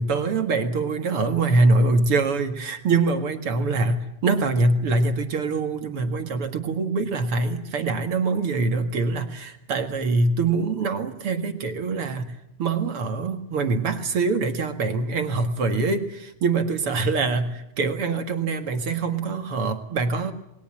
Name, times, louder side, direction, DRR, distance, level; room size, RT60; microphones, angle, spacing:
voice 1, 0.0-12.3 12.6-20.3, right 3 dB, 45° right, 7 dB, 2.2 m, -24 dB
28.0 x 21.5 x 7.6 m, 0.81 s
omnidirectional pair, 4.1 m